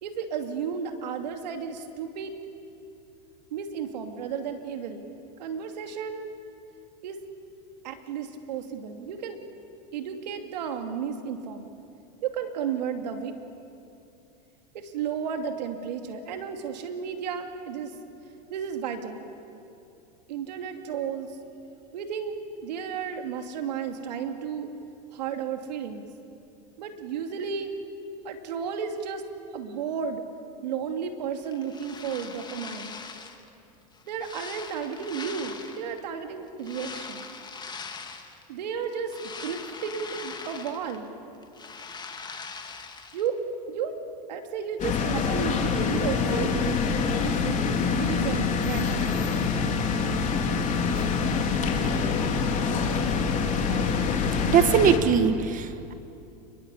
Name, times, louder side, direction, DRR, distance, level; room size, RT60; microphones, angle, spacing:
voice 1, 0.0-2.3 3.5-5.1 5.4-6.3 7.0-7.2 7.8-9.4 9.9-11.7 12.2-13.4 14.7-17.9 18.5-19.2 20.3-21.3 21.9-24.7 25.1-26.0 26.8-27.7 28.2-29.2 29.5-30.2 30.6-33.0 34.1-37.2 38.5-39.1 39.4-41.1 43.1-43.4 43.7-44.0 44.3-46.8 47.2-49.1, right 7 dB, 85° right, 5 dB, 2.6 m, -33 dB
sound 1, 31.4-33.5 33.9-36.0 36.6-38.4 38.8-41.1 41.3-43.3, left 5 dB, 20° left, 2.3 m, -41 dB
sound 2, 44.8-55.0, left 5 dB, 35° left, 3.8 m, -25 dB
voice 2, 54.5-55.9, right 7 dB, 40° right, 10 dB, 1.4 m, -21 dB
29.0 x 22.0 x 8.4 m, 2.6 s
supercardioid pair, 115°, 21 cm